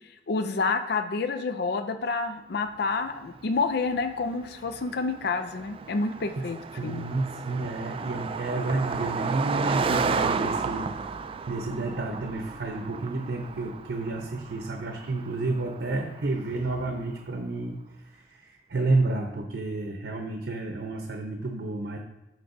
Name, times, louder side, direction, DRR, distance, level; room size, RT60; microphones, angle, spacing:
voice 1, 0.3-7.0, left 4 dB, 60° left, 8 dB, 0.5 m, -29 dB
Car passing by, 3.4-17.1, right 5 dB, 30° right, 0.3 m, -33 dB
voice 2, 6.8-10.9 11.5-17.8 18.1-22.0, right 2 dB, 70° right, 2 dB, 0.8 m, -30 dB
12.5 x 4.6 x 2.7 m, 1.0 s
head